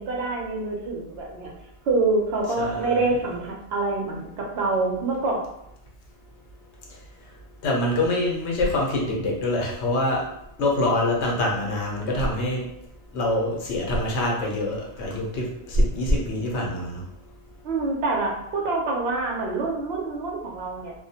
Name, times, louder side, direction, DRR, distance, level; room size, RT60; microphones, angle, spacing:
voice 1, 0.0-1.5 1.9-5.4 17.6-20.9, right 3 dB, 70° right, 0 dB, 0.8 m, -26 dB
voice 2, 2.6-3.0 7.6-10.2 10.6-12.7 13.1-17.0, left 1 dB, 85° left, -1 dB, 0.9 m, -25 dB
2.2 x 2.1 x 2.7 m, 0.79 s
omnidirectional pair, 1.1 m